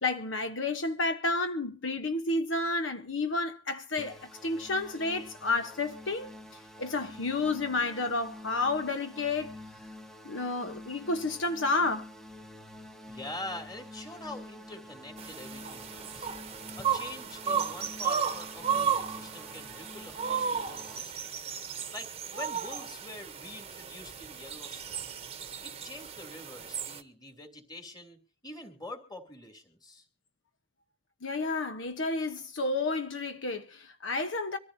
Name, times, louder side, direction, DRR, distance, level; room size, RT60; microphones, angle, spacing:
voice 1, 0.0-6.3 6.8-9.5 10.2-12.1 31.2-34.6, left 3 dB, 80° left, 1.1 m, -31 dB
sound 1, 4.0-21.0, left 1 dB, 5° left, 0.9 m, -48 dB
voice 2, 13.1-16.3 16.8-21.3 21.9-25.1 25.6-30.0, left 2 dB, 20° left, 3.0 m, -45 dB
sound 2, 15.2-27.0, right 7 dB, 30° right, 0.9 m, -34 dB
24.5 x 14.5 x 2.8 m
head